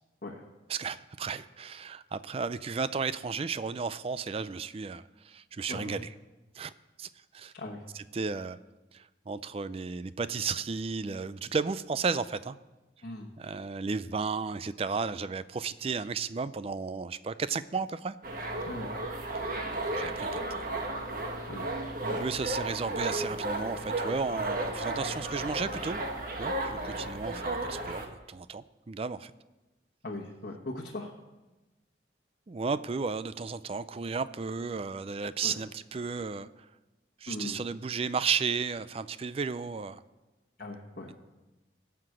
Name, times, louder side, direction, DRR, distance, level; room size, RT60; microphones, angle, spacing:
voice 1, 0.7-6.1 6.6-6.7 7.0-7.1 7.3-7.5 7.9-8.6 8.9-12.6 13.4-18.1 19.9-20.7 22.0-26.0 26.4-29.3 32.5-36.5 37.2-40.0, right 5 dB, 30° right, 15 dB, 0.4 m, -34 dB
sound 1, 18.2-28.1, right 2 dB, 50° right, 1.4 m, -34 dB
voice 2, 30.0-31.1 35.4-35.5 37.3-37.6 40.6-41.1, left 2 dB, 50° left, -4 dB, 1.2 m, -39 dB
14.5 x 5.9 x 7.7 m, 1.1 s
head